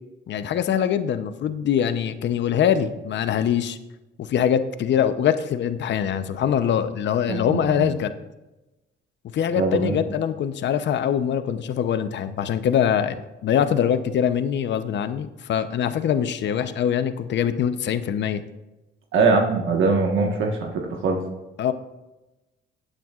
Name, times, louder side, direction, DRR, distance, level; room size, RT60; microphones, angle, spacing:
voice 1, 0.3-3.8 4.2-8.1 9.3-18.4 21.6-21.7, left 9 dB, 65° left, 11 dB, 0.8 m, -23 dB
voice 2, 7.3-7.9 9.5-10.0 19.1-21.2, right 4 dB, 80° right, 1 dB, 1.4 m, -22 dB
16.0 x 9.0 x 2.5 m, 1.0 s
cardioid pair, 90°, 20 cm